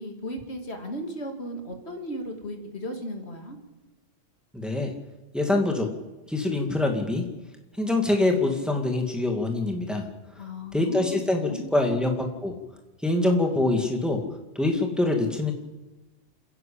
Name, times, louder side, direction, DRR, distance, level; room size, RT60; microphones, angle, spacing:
voice 1, 0.0-3.6 10.4-12.3, equal, 55° left, 4 dB, 2.7 m, -36 dB
voice 2, 4.5-4.9 5.3-5.9 6.3-7.2 7.8-10.0 10.7-12.5 13.0-14.2 14.6-15.5, left 2 dB, ahead, 2 dB, 2.2 m, -24 dB
28.5 x 11.0 x 8.7 m, 1.1 s
omnidirectional pair, 1.3 m